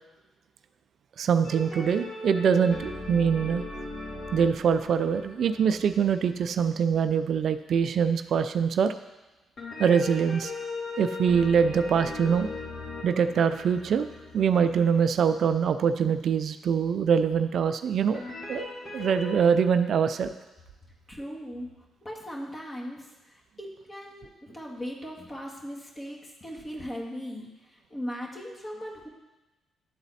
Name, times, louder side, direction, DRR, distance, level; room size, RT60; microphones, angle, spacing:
voice 1, 1.2-3.6 4.3-8.9 9.8-10.5 11.0-12.5 13.0-14.1 14.3-18.2 18.5-18.7 18.9-20.3, right 7 dB, 65° right, 10 dB, 0.3 m, -24 dB
sound 1, 1.4-7.1 9.6-15.5 18.1-19.4, left 3 dB, 50° left, 2.2 m, -39 dB
voice 2, 21.1-21.7 22.0-29.1, equal, 25° left, -1 dB, 1.8 m, -38 dB
10.5 x 4.0 x 4.1 m, 1.1 s
supercardioid pair, 65°, 0 cm